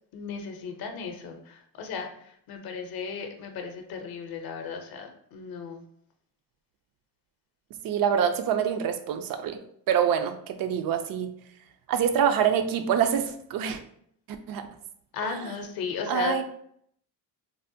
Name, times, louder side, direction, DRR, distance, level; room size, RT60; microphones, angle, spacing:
voice 1, 0.1-5.8 15.1-16.4, left 6 dB, 50° left, 4 dB, 0.6 m, -35 dB
voice 2, 7.8-9.6 9.9-11.3 11.9-13.8 14.5-14.7 15.2-15.4 16.1-16.4, right 8 dB, 50° right, 8 dB, 0.4 m, -25 dB
3.4 x 2.1 x 2.6 m, 0.68 s
cardioid pair, 95°, 48 cm